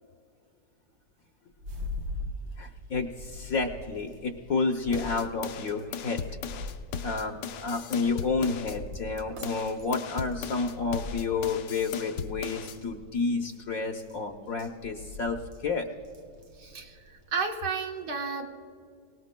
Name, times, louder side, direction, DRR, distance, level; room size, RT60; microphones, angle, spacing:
sound 1, 1.5-17.4, left 1 dB, 90° right, 2.0 m, -43 dB
voice 1, 2.6-6.2 7.0-15.9, left 4 dB, 60° left, 4 dB, 1.1 m, -30 dB
sound 2, 4.9-8.8 9.2-12.8, left 7 dB, 80° left, 1.3 m, -37 dB
voice 2, 16.6-18.5, right 5 dB, 70° right, 3 dB, 1.7 m, -32 dB
24.0 x 18.0 x 2.2 m, 2.4 s
omnidirectional pair, 1.9 m